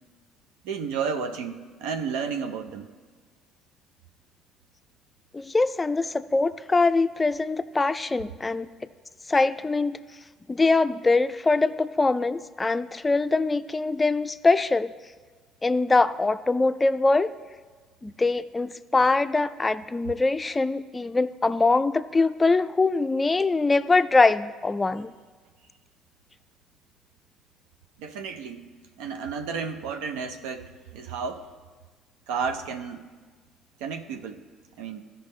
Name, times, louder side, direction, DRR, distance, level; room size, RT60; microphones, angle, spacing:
voice 1, 0.6-2.9 28.0-28.7 29.0-31.5 32.3-33.1 33.8-34.4 34.8-35.0, right 6 dB, 80° right, 6 dB, 0.5 m, -32 dB
voice 2, 5.3-8.7 9.3-10.0 10.5-14.9 15.6-17.3 18.0-25.1, left 3 dB, 20° left, 12 dB, 0.4 m, -23 dB
14.0 x 5.5 x 3.2 m, 1.5 s
hypercardioid pair, 60°, 0 cm